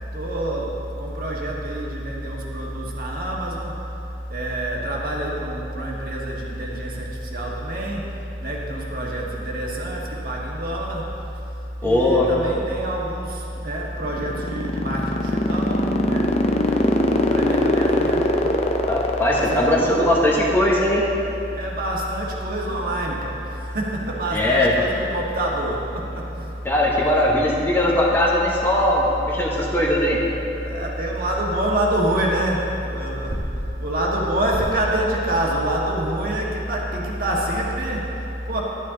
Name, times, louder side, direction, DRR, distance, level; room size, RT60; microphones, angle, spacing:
voice 1, 0.1-3.9 4.3-8.1 8.4-11.1 11.8-16.4 16.7-18.7 19.3-20.2 21.5-26.6 30.6-38.6, right 1 dB, 50° right, -3 dB, 1.4 m, -26 dB
voice 2, 11.8-12.3 18.9-21.0 24.3-24.7 26.6-30.2, left 1 dB, 10° left, -3 dB, 0.9 m, -19 dB
sound 1, 14.0-20.6, left 1 dB, 35° left, 0.6 m, -20 dB
11.5 x 9.6 x 3.8 m, 2.9 s
head